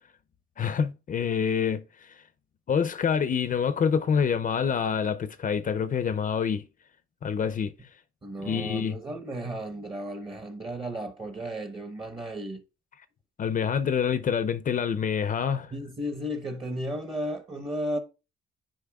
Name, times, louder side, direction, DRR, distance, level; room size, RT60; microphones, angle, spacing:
voice 1, 0.6-1.8 2.7-6.6 7.2-7.7 8.4-9.0 13.4-15.7, left 7 dB, 45° left, 0.5 m, -26 dB
voice 2, 8.2-12.6 15.7-18.0, equal, 25° right, 1.0 m, -34 dB
10.0 x 4.6 x 2.3 m
cardioid pair, 90°, 20 cm